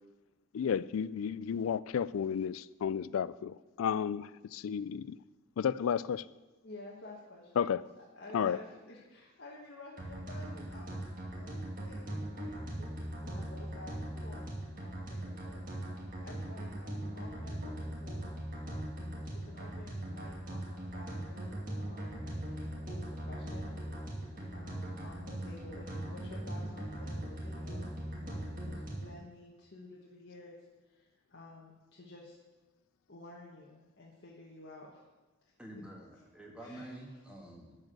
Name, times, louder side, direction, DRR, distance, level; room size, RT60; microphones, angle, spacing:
voice 1, 0.5-5.2 5.6-6.2 7.6-7.8 8.3-8.6, left 7 dB, 85° left, 0.3 m, -32 dB
voice 2, 6.6-15.6 16.2-18.3 19.3-23.7 24.5-32.4 33.1-35.0 35.4-35.5 36.6-36.9, left 2 dB, 60° left, 1.3 m, -52 dB
sound 1, 10.0-29.2, right 1 dB, 40° right, 2.2 m, -40 dB
voice 3, 35.6-37.8, right 1 dB, 5° right, 1.6 m, -48 dB
12.0 x 4.9 x 7.7 m
head